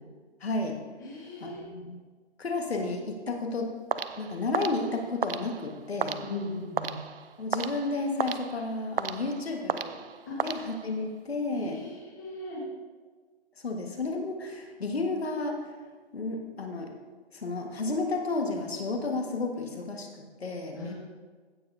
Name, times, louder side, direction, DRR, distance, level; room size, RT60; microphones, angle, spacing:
voice 1, 0.4-0.8 1.4-2.0 2.4-3.7 4.2-6.2 7.4-10.0 10.4-11.8 13.6-15.7 16.1-16.9 17.3-20.8, left 3 dB, 65° left, 2 dB, 1.6 m, -32 dB
voice 2, 1.0-1.6 6.2-7.0 10.3-10.4 11.5-12.6 20.7-20.9, left 2 dB, 15° left, -6 dB, 1.5 m, -38 dB
sound 1, 3.9-11.2, right 6 dB, 60° right, 0.5 m, -35 dB
16.0 x 6.9 x 2.7 m, 1.4 s
hypercardioid pair, 180°, 33 cm